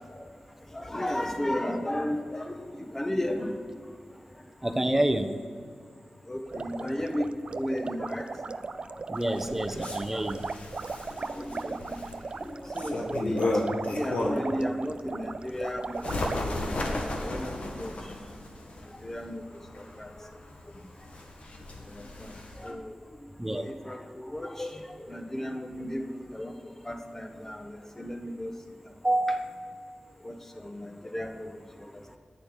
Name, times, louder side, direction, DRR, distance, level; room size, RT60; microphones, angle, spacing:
voice 1, 0.7-3.5 6.3-7.3 7.5-8.3 9.3-9.4 10.1-10.2 11.2-12.1 12.4-17.9 19.0-19.4 20.0-20.3 22.2-22.3 22.6-22.9 23.5-24.8 25.1-26.5 26.8-28.5 30.2-31.5, left 1 dB, 20° left, 5 dB, 1.4 m, -34 dB
voice 2, 4.6-5.3 9.1-10.5 23.4-23.6 29.0-29.4, right 1 dB, 15° right, 8 dB, 0.9 m, -27 dB
sound 1, 6.5-16.4, right 4 dB, 50° right, 0.4 m, -37 dB
Bird, 9.2-14.6 15.0-22.7, left 2 dB, 70° left, 1.9 m, -35 dB
10.5 x 9.1 x 8.2 m, 2.2 s
wide cardioid pair, 85°, 2 cm